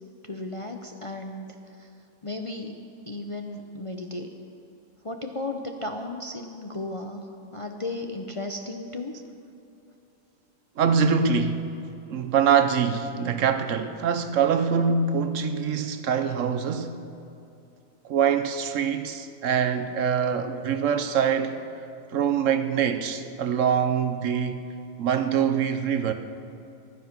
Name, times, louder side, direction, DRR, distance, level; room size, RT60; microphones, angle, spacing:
voice 1, 0.3-1.9 2.2-2.8 3.1-4.3 5.0-9.2 20.2-20.3, left 2 dB, 35° left, 0.6 m, -35 dB
voice 2, 10.8-11.6 12.1-17.0 18.1-21.6 22.1-24.6 25.0-26.1, right 7 dB, 70° right, 1.1 m, -24 dB
15.0 x 11.5 x 5.9 m
omnidirectional pair, 1.4 m